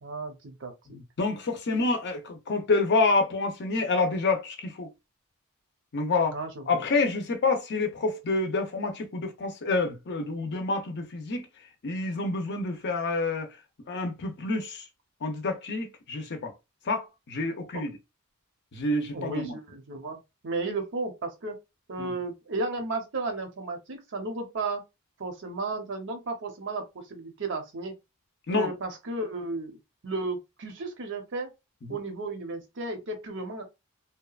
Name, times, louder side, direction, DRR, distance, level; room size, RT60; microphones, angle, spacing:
voice 1, 0.0-0.7 6.3-6.8 17.7-17.8 19.1-21.5 21.9-24.8 25.2-27.9 28.5-29.8 30.0-31.5 31.9-33.6, right 3 dB, 60° right, 0.7 m, -34 dB
voice 2, 0.9-4.9 5.9-6.4 6.7-11.5 11.8-13.5 13.9-14.8 15.2-16.5 16.9-17.9 18.7-19.5 22.0-22.2 28.5-28.7 31.9-32.0, left 3 dB, 50° left, 0.6 m, -28 dB
2.8 x 2.2 x 2.3 m
head